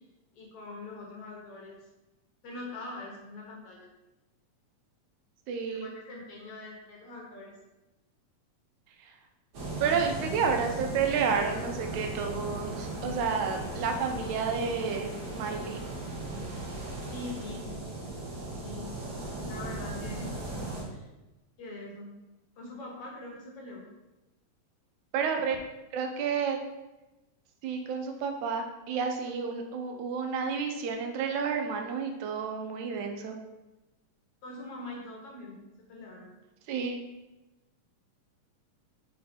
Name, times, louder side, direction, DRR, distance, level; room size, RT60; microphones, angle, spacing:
voice 1, 0.4-1.8 2.4-3.9 5.7-7.5 17.1-17.7 18.6-19.0 19.5-20.3 20.9-21.1 21.6-22.1 22.6-23.8 34.4-35.6 35.9-36.3, left 2 dB, 60° left, -1 dB, 1.9 m, -43 dB
voice 2, 5.5-5.9 9.0-9.1 9.8-15.8 25.1-25.6 25.9-26.6 27.6-33.4 36.7-37.0, right 6 dB, 85° right, 3 dB, 2.2 m, -30 dB
sound 1, 9.5-20.8, right 2 dB, 45° right, 1.6 m, -37 dB
5.5 x 4.3 x 4.3 m, 1.0 s
omnidirectional pair, 3.4 m